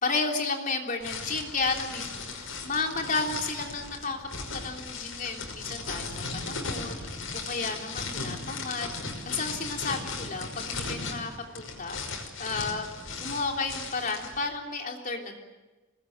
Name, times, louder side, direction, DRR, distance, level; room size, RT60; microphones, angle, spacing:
voice 1, 0.0-4.2 4.5-8.9 9.2-12.9 13.2-15.4, left 4 dB, 45° left, 2 dB, 3.5 m, -32 dB
sound 1, 1.0-14.4, left 4 dB, 90° left, 5.6 m, -37 dB
24.5 x 20.5 x 9.0 m, 1.2 s
head